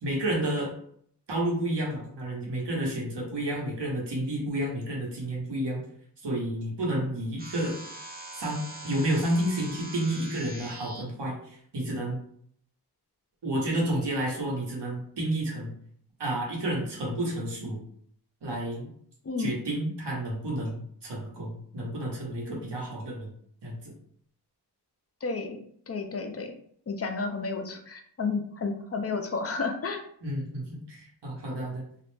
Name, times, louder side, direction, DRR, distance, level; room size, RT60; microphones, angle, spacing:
voice 1, 0.0-0.7 1.3-5.8 6.2-7.8 8.3-12.2 13.4-15.7 16.2-17.8 18.4-18.9 19.4-23.3 23.6-23.9 30.2-31.8, right 1 dB, 80° right, -2 dB, 1.0 m, -30 dB
sound 1, 7.4-11.0, right 2 dB, 20° right, 0.8 m, -43 dB
voice 2, 25.2-25.6 25.9-26.5 26.9-30.0, left 4 dB, 35° left, 5 dB, 0.5 m, -31 dB
2.4 x 2.0 x 3.2 m, 0.63 s
wide cardioid pair, 50°, 41 cm